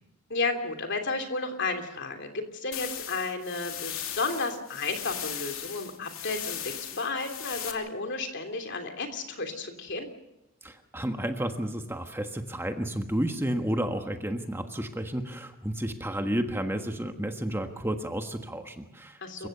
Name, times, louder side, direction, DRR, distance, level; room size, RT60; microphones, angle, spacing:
voice 1, 0.3-10.1 19.2-19.5, left 3 dB, 55° left, 5 dB, 3.2 m, -32 dB
sound 1, 2.7-7.7, left 10 dB, 75° left, 2.7 m, -38 dB
voice 2, 10.6-19.5, right 1 dB, 10° right, 5 dB, 1.4 m, -31 dB
28.5 x 15.5 x 6.8 m, 0.93 s
head